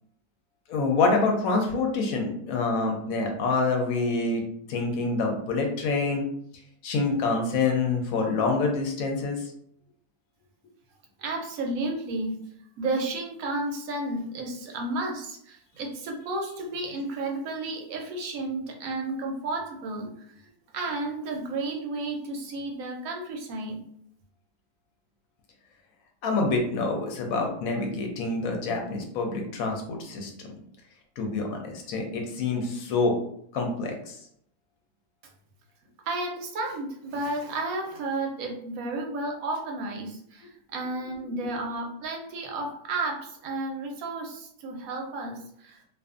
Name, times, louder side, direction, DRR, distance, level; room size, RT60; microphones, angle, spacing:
voice 1, 0.7-4.4 4.7-6.2 6.8-9.4 26.2-30.3 31.2-33.1 33.5-34.2, left 3 dB, 70° left, 2 dB, 0.9 m, -26 dB
voice 2, 11.2-12.3 12.8-20.5 20.7-23.8 36.1-45.8, right 2 dB, 70° right, 1 dB, 0.9 m, -32 dB
2.5 x 2.3 x 2.4 m, 0.70 s
omnidirectional pair, 1.7 m